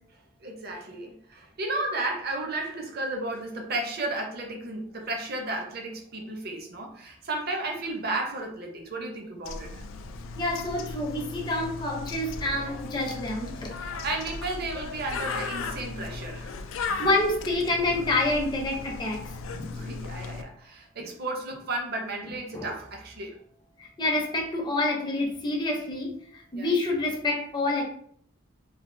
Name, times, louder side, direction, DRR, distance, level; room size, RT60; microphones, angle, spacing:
voice 1, 0.4-9.8 13.7-16.5 19.7-23.4 26.5-26.7, right 2 dB, 50° right, 2 dB, 0.6 m, -33 dB
Bird, 9.4-20.4, left 4 dB, 75° left, 0.3 m, -36 dB
voice 2, 10.4-13.8 16.8-19.2 19.5-19.9 22.5-22.7 23.8-27.8, left 2 dB, 20° left, 0 dB, 0.6 m, -28 dB
3.3 x 2.3 x 2.6 m, 0.63 s
head